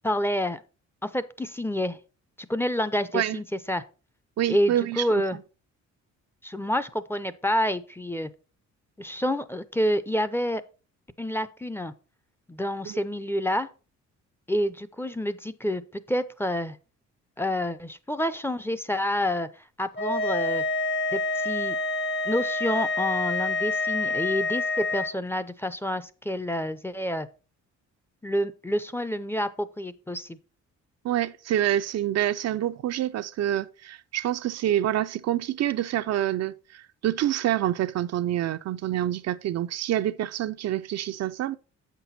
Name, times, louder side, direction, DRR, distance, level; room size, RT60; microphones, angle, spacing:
voice 1, 0.0-0.6 1.0-2.0 2.5-3.8 4.5-5.4 6.4-8.3 9.0-10.6 11.2-11.9 12.5-13.7 14.5-16.8 17.4-19.5 19.8-20.6 21.1-21.8 22.2-27.3 28.2-30.4, equal, 10° left, 0.5 m, -28 dB
voice 2, 4.4-5.1 12.9-13.0 31.0-41.6, right 12 dB, 60° right, 0.5 m, -27 dB
sound 1, 20.0-25.1, left 3 dB, 35° left, 0.8 m, -27 dB
7.7 x 6.0 x 4.1 m
cardioid pair, 90°, 30 cm